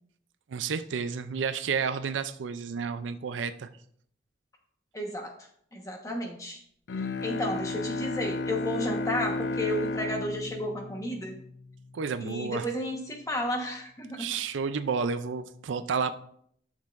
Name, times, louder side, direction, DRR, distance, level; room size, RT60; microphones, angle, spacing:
voice 1, 0.5-3.7 11.9-12.7 14.2-16.1, right 5 dB, 85° right, 11 dB, 0.4 m, -31 dB
voice 2, 4.9-5.3 5.7-6.6 7.0-11.4 12.2-14.3, left 1 dB, 15° left, 2 dB, 1.2 m, -32 dB
Bowed string instrument, 6.9-12.0, left 3 dB, 70° left, 0.4 m, -33 dB
11.5 x 6.3 x 2.5 m, 0.66 s
head